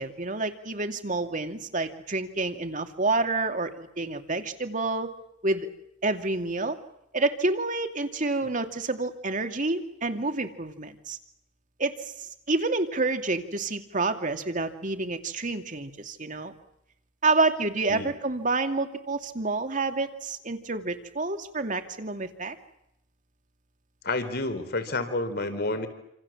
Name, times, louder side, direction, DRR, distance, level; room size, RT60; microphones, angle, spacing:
voice 1, 0.0-5.1 5.4-5.7 6.0-6.8 7.1-11.2 11.8-12.0 12.2-16.5 17.2-22.6, right 3 dB, 45° right, 7 dB, 2.7 m, -28 dB
voice 2, 24.0-25.9, left 2 dB, 60° left, 10 dB, 4.0 m, -30 dB
28.5 x 27.5 x 7.4 m, 0.78 s
head